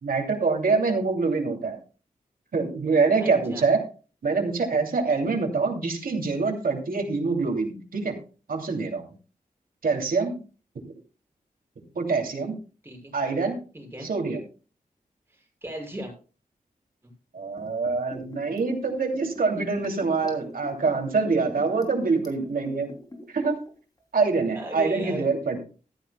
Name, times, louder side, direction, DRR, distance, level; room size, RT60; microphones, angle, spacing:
voice 1, 0.0-1.8 2.5-3.8 4.2-8.2 8.5-9.1 9.8-10.4 11.9-12.5 13.1-13.6 14.0-14.4 17.3-22.9 23.3-23.6 24.1-25.6, right 4 dB, 90° right, 3 dB, 2.8 m, -25 dB
voice 2, 3.2-3.7 12.8-13.1 13.7-14.1 15.3-16.1 24.5-25.3, right 1 dB, 15° right, 0 dB, 6.5 m, -36 dB
Liquid, 17.5-23.7 24.0-24.1, left 1 dB, 25° left, 3.1 m, -41 dB
14.5 x 14.0 x 2.3 m, 0.36 s
wide cardioid pair, 120°, 15 cm